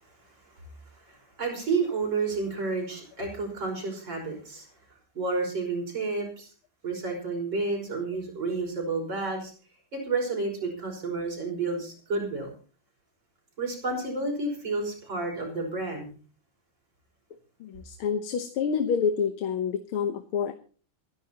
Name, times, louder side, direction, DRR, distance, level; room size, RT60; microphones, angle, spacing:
voice 1, 1.1-4.7 5.1-6.5 6.8-9.5 9.9-12.5 13.6-16.1, right 3 dB, 60° right, 1 dB, 6.2 m, -30 dB
voice 2, 17.6-20.5, left 6 dB, 90° left, 8 dB, 1.9 m, -28 dB
27.5 x 11.0 x 2.9 m, 0.38 s
omnidirectional pair, 2.2 m